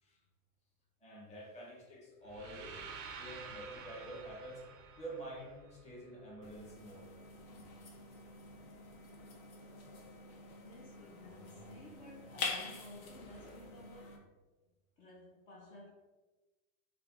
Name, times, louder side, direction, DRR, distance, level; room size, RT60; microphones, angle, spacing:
voice 1, 1.0-2.8 3.1-4.6 5.0-7.1, right 1 dB, 15° left, 0.9 m, -48 dB
sound 1, 2.2-6.3, right 5 dB, 35° right, 0.4 m, -50 dB
sound 2, 6.4-14.2, left 3 dB, 65° left, 1.0 m, -46 dB
voice 2, 10.6-14.3 15.0-15.9, left 1 dB, 40° left, 0.8 m, -54 dB
3.6 x 2.3 x 3.4 m
supercardioid pair, 135°, 44 cm